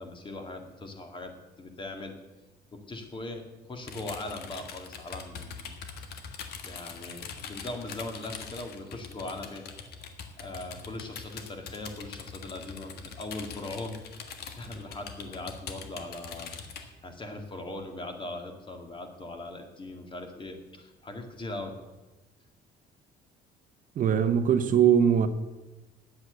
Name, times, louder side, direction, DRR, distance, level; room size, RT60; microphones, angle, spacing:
voice 1, 0.0-2.1 2.7-3.4 3.7-5.8 6.6-9.6 10.4-16.5 16.8-21.8, left 2 dB, 30° left, 2.2 m, -40 dB
sound 1, 3.8-16.8, left 6 dB, 70° left, 1.6 m, -42 dB
voice 2, 24.0-25.3, right 8 dB, 50° right, 0.9 m, -21 dB
10.0 x 8.0 x 8.1 m
cardioid pair, 110°, 17 cm